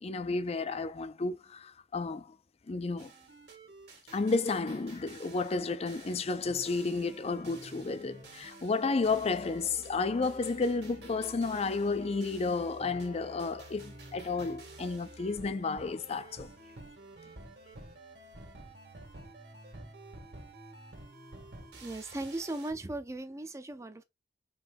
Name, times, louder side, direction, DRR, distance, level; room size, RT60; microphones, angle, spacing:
voice 1, 0.0-2.4 2.7-3.1 4.1-16.5, left 3 dB, 35° left, 0.4 m, -32 dB
sound 1, 3.0-22.7, right 2 dB, 65° right, 1.7 m, -50 dB
voice 2, 21.7-24.0, right 2 dB, 15° right, 0.5 m, -38 dB
4.7 x 2.7 x 3.6 m
head